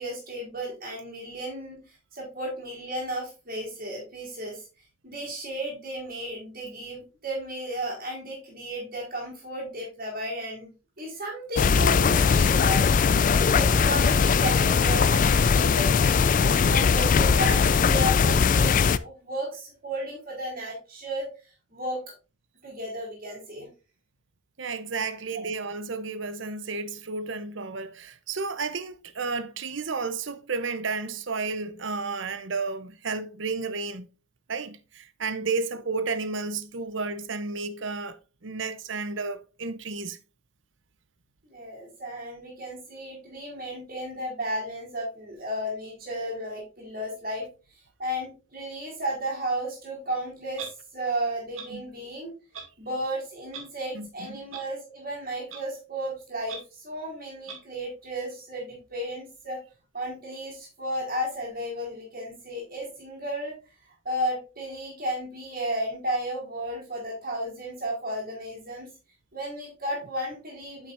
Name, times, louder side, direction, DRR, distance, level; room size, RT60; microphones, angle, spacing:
voice 1, 0.0-4.7 5.0-10.7 11.0-21.3 21.7-22.0 22.6-23.7 25.3-25.4 41.5-47.4 47.7-52.3 52.8-59.6 59.9-63.5 64.0-68.9 69.3-70.9, equal, 45° right, 4.1 m, -34 dB
sound 1, 11.6-19.0, left 5 dB, 40° left, 0.3 m, -20 dB
voice 2, 24.6-34.1 34.5-38.2 38.4-40.2 51.7-51.8 53.9-54.4, right 4 dB, 60° right, 0.8 m, -32 dB
Clock, 50.6-50.7 51.5-51.7 52.5-52.7 53.5-53.6 54.5-54.6 55.5-55.6 56.5-56.6 57.5-57.6, right 6 dB, 80° right, 2.2 m, -38 dB
9.0 x 7.3 x 2.6 m
head